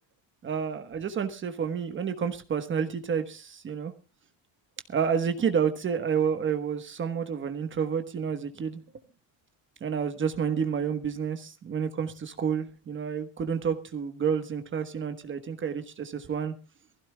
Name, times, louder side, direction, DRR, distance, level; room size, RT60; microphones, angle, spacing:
voice 1, 0.4-3.9 4.9-8.8 9.8-16.5, right 7 dB, 25° right, 8 dB, 1.2 m, -29 dB
23.5 x 15.5 x 2.2 m, 0.32 s
cardioid pair, 180°, 43 cm